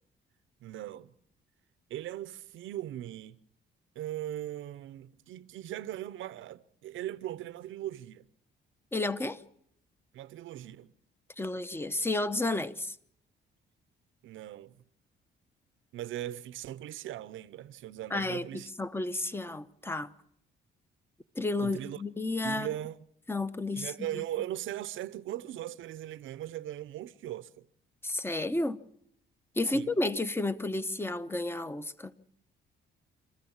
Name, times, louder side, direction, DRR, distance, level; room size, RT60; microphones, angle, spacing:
voice 1, 0.6-1.1 1.9-3.4 3.9-8.2 10.1-10.9 14.2-14.8 15.9-18.7 21.6-22.0 22.4-23.0 23.7-27.7 29.7-29.9, right 13 dB, 80° right, 0.8 m, -39 dB
voice 2, 8.9-9.4 11.4-13.0 18.1-20.1 21.4-22.7 23.3-23.9 28.0-28.8 29.6-32.1, left 2 dB, 10° left, 0.9 m, -32 dB
26.5 x 14.5 x 7.2 m
cardioid pair, 90°, 20 cm